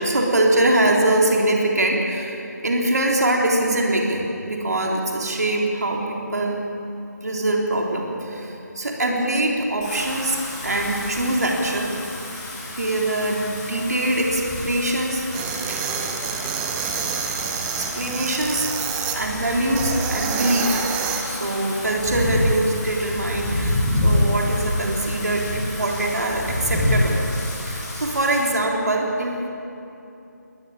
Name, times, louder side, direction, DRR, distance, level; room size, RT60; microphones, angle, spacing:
voice 1, 0.0-4.2 4.5-6.6 7.2-10.4 10.6-11.9 12.8-15.3 15.7-16.0 17.8-18.7 19.1-20.9 21.2-27.2 27.7-29.5, right 1 dB, 65° right, -1 dB, 3.7 m, -23 dB
Wind / Rain, 9.8-28.4, left 1 dB, 20° left, 5.7 m, -28 dB
sound 1, 15.3-19.2 19.7-21.2, right 7 dB, 10° right, 1.1 m, -28 dB
20.5 x 20.0 x 7.3 m, 2.8 s
figure-of-eight pair, 155°, 10 cm